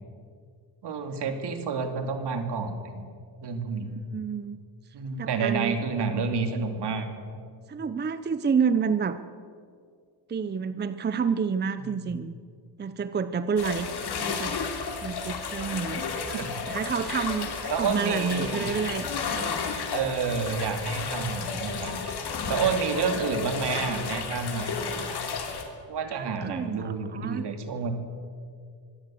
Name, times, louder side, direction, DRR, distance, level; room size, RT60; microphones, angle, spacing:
voice 1, 0.8-3.0 3.4-3.9 4.9-7.1 11.9-12.2 16.3-16.6 17.7-18.7 19.9-22.0 22.5-24.7 25.9-27.9, right 5 dB, 65° right, 6 dB, 2.8 m, -29 dB
voice 2, 3.8-4.6 5.2-5.8 7.7-9.2 10.3-12.3 12.8-13.9 14.2-14.6 15.0-16.1 16.7-19.5 26.1-27.4, right 6 dB, 25° right, 12 dB, 0.6 m, -29 dB
sound 1, 13.6-25.6, left 5 dB, 60° left, 3.3 m, -32 dB
24.0 x 17.5 x 7.7 m, 2.2 s
cardioid pair, 135°, 44 cm